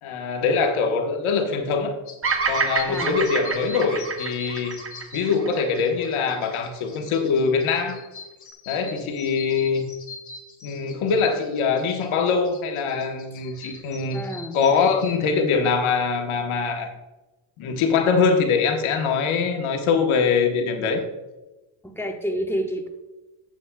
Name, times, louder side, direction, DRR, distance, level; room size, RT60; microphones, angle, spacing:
voice 1, 0.0-1.9 2.5-4.8 5.1-8.0 8.7-9.8 10.6-14.2 14.5-16.9 17.6-21.0, left 5 dB, 90° left, 4 dB, 1.3 m, -23 dB
sound 1, 2.1-15.2, left 5 dB, 40° left, 1.2 m, -43 dB
Bird vocalization bird call bird song, 2.2-6.5, right 5 dB, 30° right, 0.8 m, -28 dB
voice 2, 14.1-14.6 21.8-22.9, equal, 5° left, 3 dB, 1.1 m, -29 dB
11.5 x 7.3 x 2.3 m, 1.1 s
cardioid pair, 105°, 47 cm